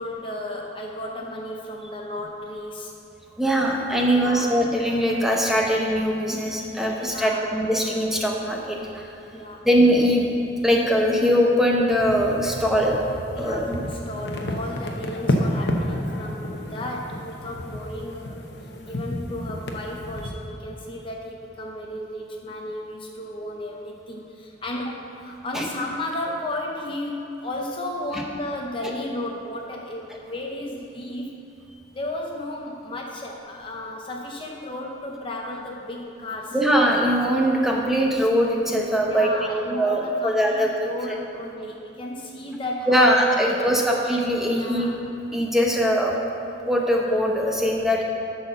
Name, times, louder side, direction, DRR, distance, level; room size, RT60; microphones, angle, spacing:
voice 1, 0.0-2.9 4.1-4.5 7.1-7.5 9.3-9.6 13.4-18.4 18.9-31.3 31.9-36.6 39.1-43.9 44.6-45.0, left 1 dB, 25° left, 0 dB, 0.6 m, -34 dB
voice 2, 3.4-9.0 9.6-10.3 10.6-13.0 13.4-13.8 25.5-25.7 36.5-40.7 42.9-44.9 45.3-46.2 46.7-48.0, equal, ahead, -1 dB, 0.8 m, -21 dB
sound 1, 11.9-20.3, left 1 dB, 60° left, 0.8 m, -30 dB
11.5 x 4.3 x 6.6 m, 2.9 s
head